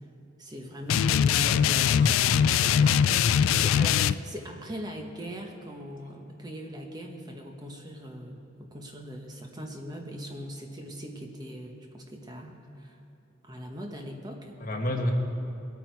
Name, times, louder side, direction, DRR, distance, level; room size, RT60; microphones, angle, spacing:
voice 1, 0.4-1.6 2.6-2.8 3.4-13.0 13.4-14.7, equal, 20° right, 2 dB, 1.1 m, -41 dB
sound 1, 0.9-4.1, left 8 dB, 80° left, 0.3 m, -22 dB
voice 2, 1.3-3.2 14.6-15.1, left 1 dB, 40° left, 2 dB, 1.4 m, -32 dB
21.0 x 9.0 x 4.7 m, 2.9 s
head